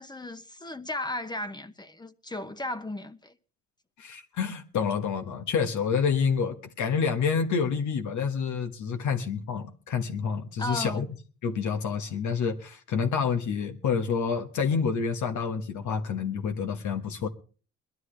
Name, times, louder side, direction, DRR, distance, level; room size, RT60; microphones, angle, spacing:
voice 1, 0.0-3.4 10.6-11.0, left 1 dB, 15° left, 0.9 m, -35 dB
voice 2, 4.0-11.1 11.4-17.3, left 6 dB, 70° left, 1.5 m, -28 dB
21.0 x 12.5 x 3.3 m
cardioid pair, 90°, 30 cm